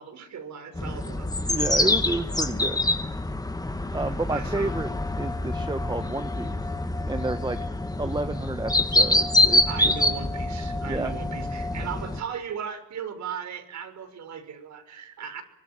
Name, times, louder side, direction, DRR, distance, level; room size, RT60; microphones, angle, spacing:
voice 1, 0.0-1.3 3.9-4.7 9.7-15.4, right 7 dB, 65° right, 8 dB, 6.3 m, -37 dB
sound 1, 0.7-12.2, left 1 dB, 10° left, 2.0 m, -26 dB
voice 2, 1.5-2.9 3.9-4.9 5.2-6.6 7.1-7.6 8.0-9.9 10.8-11.1, right 2 dB, 15° right, 10 dB, 1.3 m, -30 dB
25.0 x 23.5 x 9.1 m, 0.78 s
cardioid pair, 90°, 30 cm